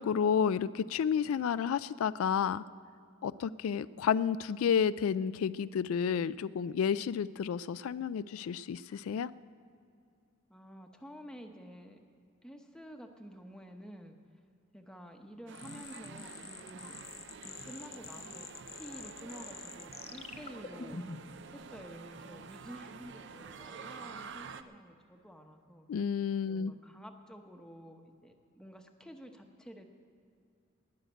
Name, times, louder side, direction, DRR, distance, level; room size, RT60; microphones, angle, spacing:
voice 1, 0.0-2.6 3.2-9.3 25.9-26.7, left 7 dB, 85° left, 16 dB, 0.3 m, -31 dB
voice 2, 10.5-12.0 12.4-14.2 14.7-17.0 17.4-18.5 18.7-21.0 21.5-25.9 26.4-29.9, equal, 5° left, 4 dB, 0.9 m, -50 dB
sound 1, 15.5-21.4, left 5 dB, 30° left, 0.6 m, -47 dB
sound 2, 15.5-24.6, right 5 dB, 55° right, 0.5 m, -48 dB
19.0 x 6.5 x 9.2 m, 2.4 s
head